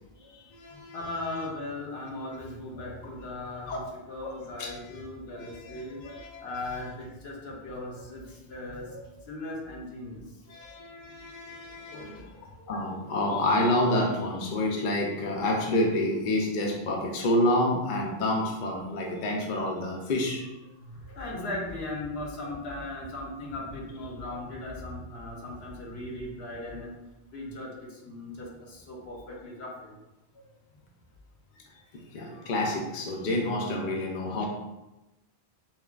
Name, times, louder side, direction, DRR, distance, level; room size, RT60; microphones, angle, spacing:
voice 1, 0.3-1.5 3.7-3.8 4.2-4.3 4.6-4.7 5.3-6.5 10.5-12.2 12.7-20.4 31.6-34.4, left 1 dB, 55° left, -1 dB, 0.6 m, -29 dB
voice 2, 0.9-3.8 4.1-10.2 10.6-10.8 11.9-12.3 20.8-26.9 27.3-29.9 34.4-34.5, left 2 dB, 75° left, -2 dB, 1.1 m, -38 dB
5.6 x 2.2 x 2.3 m, 1.0 s
omnidirectional pair, 1.1 m